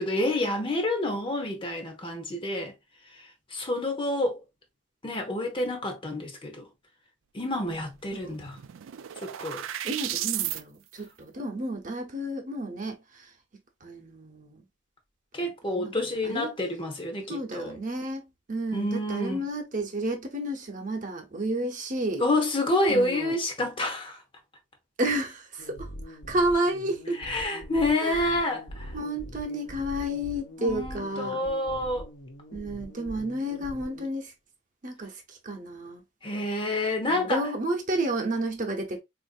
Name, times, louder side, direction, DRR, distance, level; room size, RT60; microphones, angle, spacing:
voice 1, 0.0-2.7 3.5-4.4 5.0-6.7 7.3-8.6 9.2-9.6 15.3-17.7 18.7-19.4 22.2-24.2 27.2-28.9 30.6-32.1 36.2-37.4, left 1 dB, 25° left, 0.8 m, -28 dB
sound 1, 7.8-7.9 8.1-10.6, right 12 dB, 85° right, 0.4 m, -33 dB
voice 2, 8.1-8.4 9.8-13.3 13.8-14.6 15.4-15.9 16.2-16.5 17.3-22.2 22.9-23.4 25.0-27.2 28.0-28.5 28.9-31.4 32.5-34.3 34.8-36.0 37.1-39.0, right 1 dB, 40° right, 0.9 m, -31 dB
sound 2, 25.6-34.1, equal, 85° left, 0.9 m, -43 dB
4.0 x 2.6 x 2.4 m
head